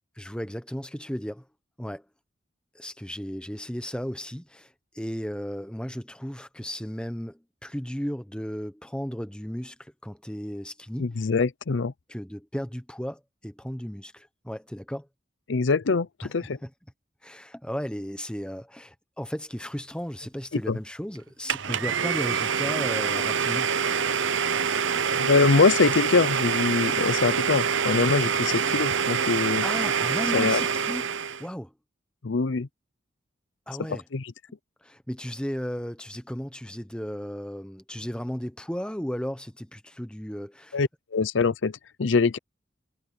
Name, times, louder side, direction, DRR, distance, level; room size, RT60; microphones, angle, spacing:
voice 1, 0.2-1.4 1.8-2.0 2.7-11.2 12.1-15.1 16.2-16.3 16.6-16.7 17.2-23.7 29.6-31.0 31.4-31.7 33.7-34.0 34.8-40.8, equal, 5° left, 1.1 m, -35 dB
voice 2, 11.0-11.9 15.5-16.6 20.7-20.8 25.1-29.6 30.3-30.6 32.2-32.7 34.1-34.3 40.7-42.4, left 4 dB, 75° left, 0.6 m, -23 dB
Domestic sounds home sounds, 21.5-31.5, right 6 dB, 80° right, 0.8 m, -26 dB
head